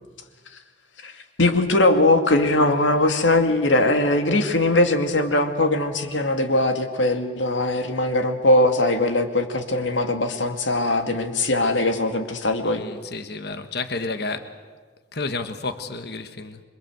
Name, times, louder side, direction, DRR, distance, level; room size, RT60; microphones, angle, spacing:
voice 1, 1.4-12.8, left 2 dB, 90° left, 2.4 m, -20 dB
voice 2, 12.6-14.6 15.1-16.6, left 3 dB, 60° left, 1.4 m, -31 dB
27.0 x 24.0 x 8.1 m
head